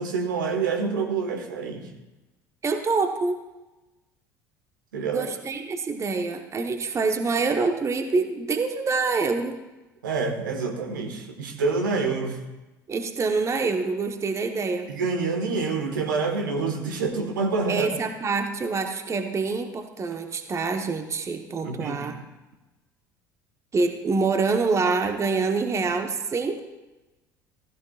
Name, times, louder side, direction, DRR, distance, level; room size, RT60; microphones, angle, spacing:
voice 1, 0.0-1.9 4.9-5.3 10.0-12.4 14.9-17.9 21.6-22.2, right 4 dB, 75° right, 3 dB, 1.5 m, -27 dB
voice 2, 2.6-3.4 5.1-9.6 12.9-14.9 17.7-22.1 23.7-26.6, right 4 dB, 30° right, 6 dB, 1.1 m, -26 dB
15.5 x 15.5 x 2.4 m, 1.1 s
figure-of-eight pair, 60°, 11 cm